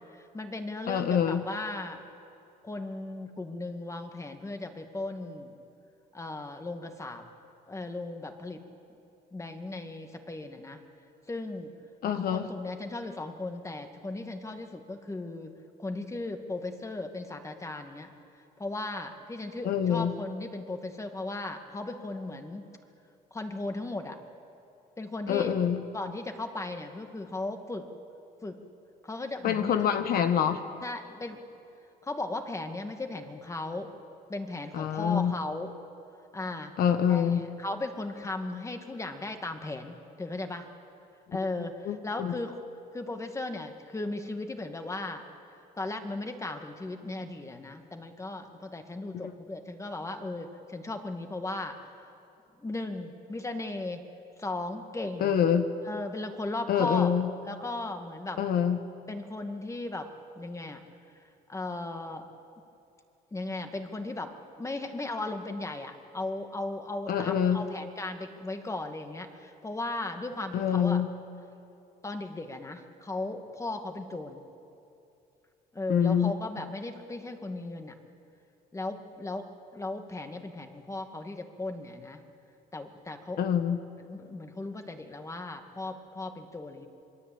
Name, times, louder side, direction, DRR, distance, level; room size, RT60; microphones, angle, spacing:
voice 1, 0.1-2.0 2.6-5.5 6.1-7.2 7.7-8.6 9.3-10.8 11.3-11.7 12.1-15.5 15.8-18.1 18.6-22.6 23.3-24.2 25.0-25.5 25.9-27.9 28.4-28.6 29.0-30.0 30.8-31.4 32.0-33.9 34.3-35.7 36.3-36.7 37.1-40.7 41.3-42.6 42.9-45.2 45.8-51.8 52.6-54.0 54.4-55.3 55.9-57.1 57.4-58.4 59.1-60.1 60.4-60.8 61.5-62.3 63.3-71.0 72.0-74.4 75.7-78.0 78.7-79.5 79.7-82.2 82.7-83.4 84.0-86.9, left 2 dB, 15° left, 5 dB, 2.2 m, -36 dB
voice 2, 0.9-1.4 12.0-12.5 19.6-20.1 25.3-25.8 29.4-30.6 34.7-35.3 36.8-37.4 41.8-42.3 49.2-49.3 55.2-55.7 56.7-57.3 58.4-58.8 67.1-67.6 70.5-71.1 75.9-76.3 83.4-83.8, left 8 dB, 60° left, 8 dB, 1.4 m, -26 dB
27.0 x 22.0 x 8.8 m, 2.7 s
cardioid pair, 110°, 17 cm